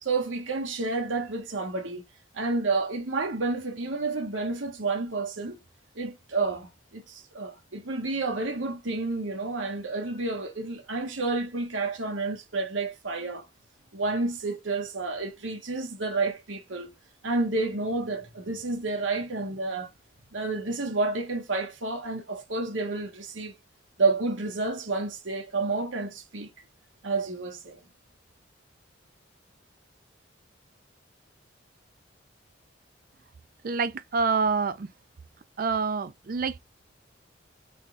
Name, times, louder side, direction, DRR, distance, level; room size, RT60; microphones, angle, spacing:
voice 1, 0.0-2.0 2.3-5.6 5.9-13.4 13.9-16.9 17.2-19.9 20.3-23.5 24.0-26.5 27.0-27.8, right 3 dB, 85° right, 1.2 m, -30 dB
voice 2, 33.6-34.9 35.6-36.6, right 5 dB, 50° right, 0.4 m, -27 dB
4.1 x 3.5 x 3.4 m
head